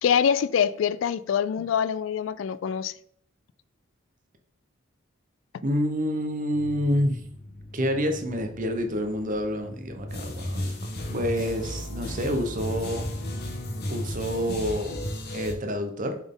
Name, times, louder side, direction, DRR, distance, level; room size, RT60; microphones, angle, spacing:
voice 1, 0.0-2.9, left 8 dB, 70° left, 0.3 m, -24 dB
voice 2, 5.6-7.2 7.7-10.7 11.1-13.1 13.9-15.0 15.3-16.2, equal, 40° right, 0.8 m, -28 dB
sound 1, 6.5-14.6, left 1 dB, 40° left, 1.3 m, -44 dB
sound 2, 10.1-15.5, left 1 dB, 55° left, 1.1 m, -33 dB
6.9 x 4.1 x 3.7 m
head